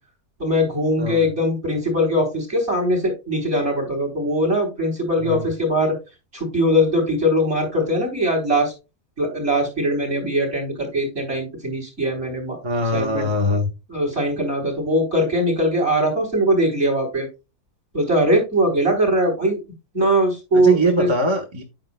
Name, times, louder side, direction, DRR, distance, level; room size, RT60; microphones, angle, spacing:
voice 1, 0.4-5.9 6.3-8.7 9.2-12.6 12.9-13.3 13.9-17.3 17.9-19.6 19.9-21.1, equal, 45° right, 2 dB, 4.3 m, -21 dB
voice 2, 1.0-1.3 5.2-5.5 12.6-13.7 20.5-21.6, equal, 20° right, 2 dB, 1.0 m, -22 dB
9.0 x 7.6 x 2.2 m, 0.27 s
omnidirectional pair, 1.7 m